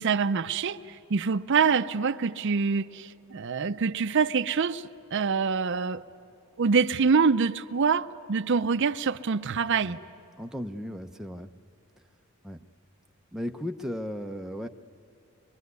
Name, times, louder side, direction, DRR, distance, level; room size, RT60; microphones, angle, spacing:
voice 1, 0.0-6.0 6.6-10.0, right 5 dB, 55° right, 0.5 m, -25 dB
voice 2, 10.4-11.5 12.4-12.6 13.3-14.7, equal, 5° right, 0.6 m, -35 dB
23.5 x 23.0 x 9.5 m
head